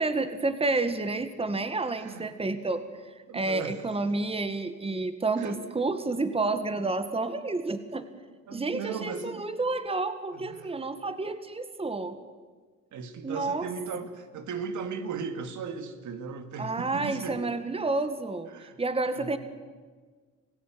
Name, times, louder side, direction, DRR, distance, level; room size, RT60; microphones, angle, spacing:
voice 1, 0.0-2.8 3.3-8.0 8.5-12.2 13.2-13.7 16.6-18.5 18.8-19.4, right 3 dB, 20° right, 10 dB, 1.8 m, -30 dB
voice 2, 1.9-2.3 3.3-3.8 5.4-5.6 8.5-9.5 10.3-10.8 12.9-17.5 18.5-18.8 19.1-19.4, right 5 dB, 75° right, 8 dB, 2.6 m, -37 dB
27.5 x 16.5 x 9.4 m, 1.5 s
cardioid pair, 90°, 30 cm